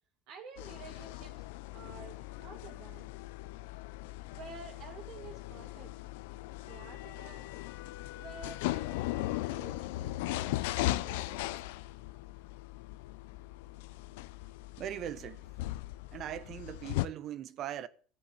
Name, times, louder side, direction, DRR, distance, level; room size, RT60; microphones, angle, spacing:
voice 1, 0.3-1.5 1.7-3.1 4.3-5.9 6.7-7.6 8.1-11.4, right 5 dB, 70° right, 2.5 m, -51 dB
sound 1, 0.6-17.1, left 17 dB, 80° left, 0.5 m, -38 dB
voice 2, 14.8-15.4 16.1-17.9, right 11 dB, 55° right, 1.1 m, -40 dB
13.0 x 8.3 x 7.3 m
supercardioid pair, 90°, 0 cm